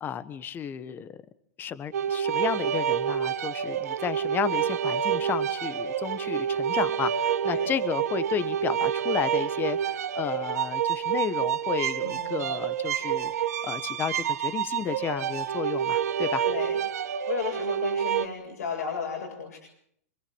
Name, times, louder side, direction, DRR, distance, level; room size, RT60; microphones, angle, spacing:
voice 1, 0.0-1.2 1.6-13.3 13.6-16.4, left 8 dB, 25° left, 14 dB, 1.4 m, -32 dB
sound 1, 1.9-18.3, right 9 dB, 85° right, 1.4 m, -28 dB
voice 2, 12.0-12.4 16.4-16.7 17.0-19.6, left 6 dB, 90° left, -1 dB, 7.8 m, -34 dB
27.0 x 22.0 x 8.1 m, 0.70 s
hypercardioid pair, 135°, 8 cm